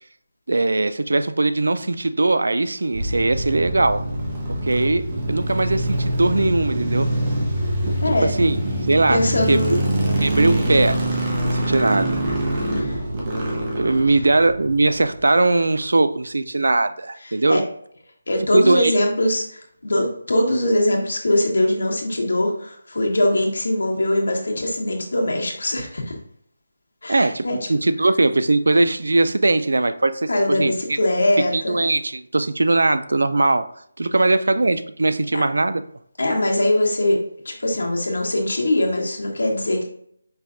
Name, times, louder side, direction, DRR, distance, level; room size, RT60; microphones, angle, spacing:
voice 1, 0.5-4.0 4.5-7.1 8.2-8.6 8.9-9.8 10.2-12.2 13.1-13.3 13.8-17.7 18.5-18.9 27.1-30.7 31.5-33.7 34.0-35.8, right 2 dB, 80° right, 11 dB, 0.4 m, -20 dB
sound 1, 2.9-15.2, right 1 dB, 15° right, 0.6 m, -24 dB
voice 2, 9.1-9.8 12.7-13.0 17.5-17.6 18.3-26.1 27.0-27.6 30.3-31.8 35.3-35.4 36.2-39.8, left 1 dB, 80° left, -1 dB, 1.4 m, -21 dB
5.5 x 2.4 x 3.8 m, 0.65 s
figure-of-eight pair, 180°, 0 cm